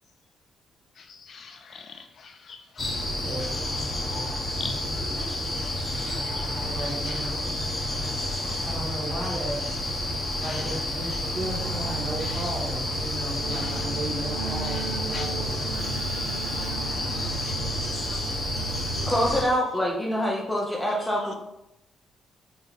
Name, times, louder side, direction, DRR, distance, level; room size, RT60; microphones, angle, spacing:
voice 1, 0.9-4.9 5.2-7.4 10.4-10.8 12.2-12.7 13.5-13.9 14.6-15.4 17.3-18.4 19.0-19.1 19.4-19.6 20.2-20.3 20.9-21.3, left 5 dB, 55° left, 5 dB, 0.4 m, -45 dB
sound 1, 2.8-19.4, left 1 dB, 25° left, 0.9 m, -30 dB
voice 2, 3.2-5.5 6.6-7.6 8.6-9.6 10.3-15.7 19.3-19.6, right 1 dB, 20° right, -2 dB, 1.2 m, -36 dB
Keyboard (musical), 11.3-19.7, right 8 dB, 90° right, 0.7 m, -38 dB
voice 3, 19.0-21.3, equal, 10° left, -2 dB, 0.6 m, -25 dB
3.9 x 2.9 x 4.0 m, 0.85 s
cardioid pair, 120°, 0 cm